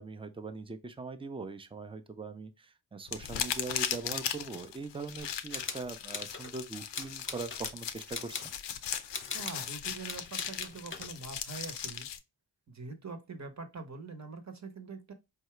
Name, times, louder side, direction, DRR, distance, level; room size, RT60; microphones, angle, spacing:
voice 1, 0.0-8.5, right 3 dB, 15° right, 0.5 m, -41 dB
sound 1, 3.1-12.2, left 9 dB, 85° left, 0.6 m, -38 dB
sound 2, 5.2-6.5 6.9-7.7 8.1-8.6 9.1-9.7 10.0-11.2, left 4 dB, 30° left, 0.7 m, -41 dB
voice 2, 9.3-12.1 12.7-15.1, right 4 dB, 40° right, 1.0 m, -44 dB
4.7 x 2.7 x 3.2 m
cardioid pair, 65°, 42 cm